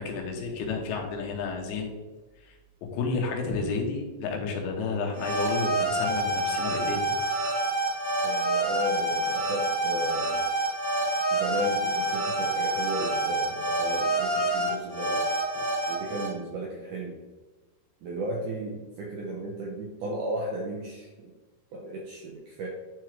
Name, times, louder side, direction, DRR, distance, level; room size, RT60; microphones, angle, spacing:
voice 1, 0.0-1.9 2.4-2.6 2.9-7.0, left 4 dB, 85° left, 1 dB, 3.5 m, -31 dB
sound 1, 5.1-16.3, right 1 dB, 35° right, 0.6 m, -27 dB
voice 2, 8.2-10.4 11.3-15.3 15.6-17.2 18.0-21.3 21.7-22.7, right 1 dB, 75° right, -2 dB, 1.9 m, -35 dB
11.0 x 4.9 x 3.2 m, 1.2 s
omnidirectional pair, 5.0 m